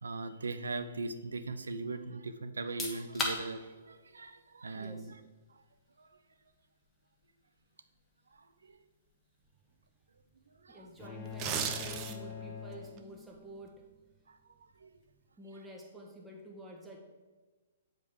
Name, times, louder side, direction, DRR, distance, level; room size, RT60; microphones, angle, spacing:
voice 1, 0.0-5.1 8.7-8.8 10.6-10.9 14.3-14.4 14.8-14.9, right 3 dB, 75° right, 10 dB, 0.5 m, -39 dB
sound 1, 2.6-15.2, left 3 dB, 15° left, 1.2 m, -47 dB
voice 2, 4.7-5.1 10.7-13.9 15.4-17.0, right 1 dB, 10° right, -1 dB, 1.3 m, -49 dB
sound 2, 11.0-13.5, left 7 dB, 35° left, 1.4 m, -44 dB
sound 3, 11.2-12.4 12.8-13.0, right 8 dB, 30° right, 0.6 m, -35 dB
8.0 x 4.9 x 3.7 m, 1.3 s
figure-of-eight pair, 115°, 0 cm